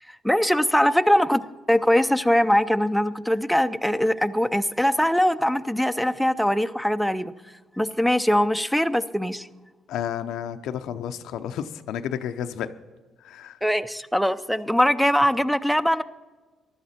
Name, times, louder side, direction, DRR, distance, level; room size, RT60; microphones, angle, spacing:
voice 1, 0.2-7.3 7.8-9.5 13.6-16.0, equal, ahead, 9 dB, 0.5 m, -22 dB
voice 2, 9.9-12.7 13.2-13.6, left 9 dB, 85° left, 9 dB, 0.6 m, -31 dB
15.0 x 11.5 x 4.3 m, 1.3 s
cardioid pair, 90°, 0 cm